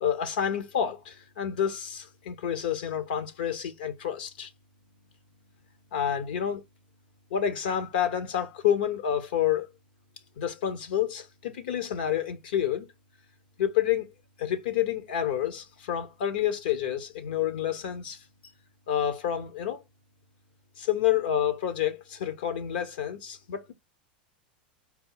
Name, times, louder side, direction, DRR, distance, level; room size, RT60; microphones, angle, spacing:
voice 1, 0.0-4.5 5.9-6.6 7.3-9.7 10.4-12.9 13.6-14.1 14.4-18.2 18.9-19.8 20.8-23.7, left 9 dB, 75° left, 0.9 m, -29 dB
4.3 x 2.1 x 4.0 m
hypercardioid pair, 95°, 5 cm